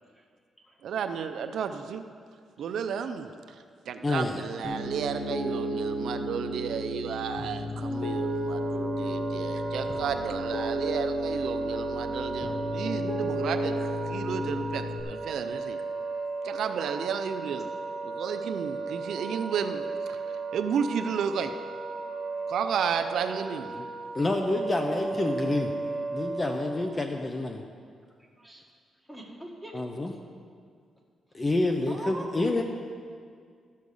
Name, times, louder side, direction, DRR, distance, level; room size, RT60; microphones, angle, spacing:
voice 1, 0.8-2.0 2.6-15.8 16.4-17.7 18.0-20.2 20.5-21.5 22.5-23.7, right 7 dB, 75° right, 8 dB, 0.5 m, -33 dB
voice 2, 4.0-4.4 23.7-23.8 24.1-25.7 26.1-27.6 29.7-30.1 31.3-32.6, left 2 dB, 25° left, 4 dB, 0.6 m, -28 dB
Piano, 4.6-15.0, equal, 45° left, 1.4 m, -33 dB
Wind instrument woodwind instrument, 7.9-27.0, right 4 dB, 55° right, 1.2 m, -35 dB
voice 3, 22.1-22.4 28.4-28.6 29.1-30.1 31.5-31.6 31.9-32.6, right 1 dB, 5° left, -2 dB, 1.9 m, -43 dB
13.0 x 6.5 x 5.4 m, 2.1 s
cardioid pair, 115°, 0 cm